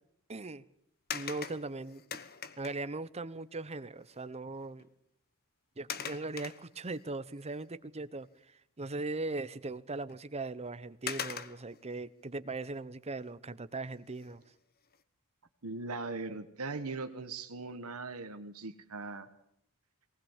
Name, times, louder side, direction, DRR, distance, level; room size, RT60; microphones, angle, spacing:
voice 1, 0.3-0.6 1.1-2.0 2.6-4.9 5.8-14.4, right 3 dB, 30° right, 14 dB, 0.9 m, -39 dB
sound 1, 1.1-2.9 4.1-4.2 4.6-4.9 5.9-7.1 7.6-7.7 10.1-10.2 11.1-11.8 14.1-14.4 14.9-15.0, left 7 dB, 45° left, 1.2 m, -41 dB
voice 2, 15.6-19.3, right 3 dB, 75° right, 8 dB, 1.4 m, -40 dB
20.0 x 19.0 x 7.3 m, 0.71 s
head